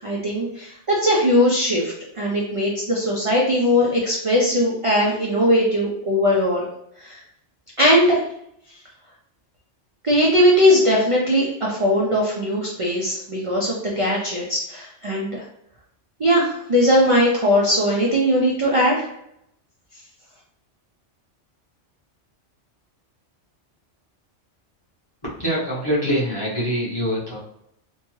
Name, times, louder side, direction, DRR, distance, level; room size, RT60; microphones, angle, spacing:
voice 1, 0.0-6.7 7.0-7.2 7.8-8.2 10.0-15.4 16.2-19.1, equal, 55° right, -3 dB, 0.3 m, -19 dB
voice 2, 25.2-27.4, equal, 25° left, -8 dB, 0.8 m, -24 dB
2.7 x 2.2 x 3.0 m, 0.75 s
omnidirectional pair, 1.2 m